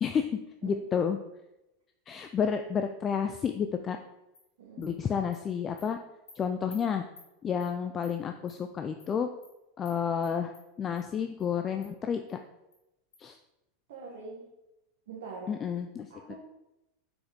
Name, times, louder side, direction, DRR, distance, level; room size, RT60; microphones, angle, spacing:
voice 1, 0.0-1.2 2.1-4.0 4.8-6.0 6.4-7.0 7.4-9.3 9.8-10.5 10.8-12.4 13.2-13.4 15.5-16.3, left 7 dB, 30° left, 7 dB, 0.4 m, -30 dB
Animal, 4.3-4.4 4.8-4.9 5.3-5.4 5.8-5.9 6.3-6.4 6.7-6.8 7.2-7.3 7.6-7.7 8.0-8.1 8.5-8.6 9.0-9.1 9.4-9.5 9.8-10.0 10.2-10.6 11.0-11.1 11.4-11.5 11.8-11.9 12.3-12.4 12.7-12.8 13.1-13.2, left 3 dB, 80° left, 1.7 m, -53 dB
voice 2, 4.6-5.0 13.9-14.5 15.1-15.5 16.1-16.4, right 4 dB, 65° right, -4 dB, 1.2 m, -43 dB
6.2 x 5.0 x 3.5 m, 0.93 s
hypercardioid pair, 90°, 0 cm